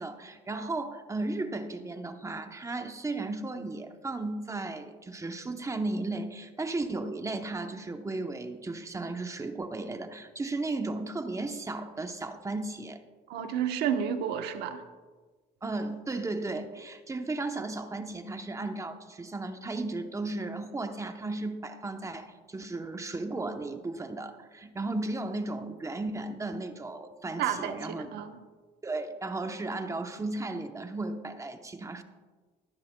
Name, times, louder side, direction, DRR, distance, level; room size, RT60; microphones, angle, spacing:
voice 1, 0.0-13.0 15.6-28.1 28.8-32.0, right 2 dB, 20° right, 7 dB, 0.8 m, -35 dB
voice 2, 13.3-14.8 27.4-28.4, right 8 dB, 80° right, 7 dB, 1.1 m, -31 dB
21.0 x 10.0 x 2.3 m, 1.4 s
cardioid pair, 110°, 17 cm